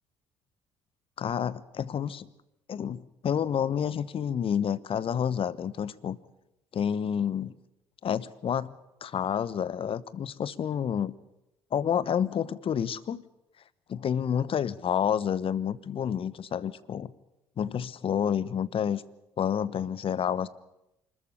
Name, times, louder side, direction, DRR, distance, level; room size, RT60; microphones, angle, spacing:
voice 1, 1.2-2.3 2.7-6.2 6.7-7.5 8.0-8.7 9.0-11.1 11.7-13.2 13.9-17.1 17.6-19.0 19.4-20.5, left 8 dB, 45° left, 19 dB, 1.0 m, -29 dB
26.0 x 14.0 x 9.9 m, 0.87 s
figure-of-eight pair, 50°, 13 cm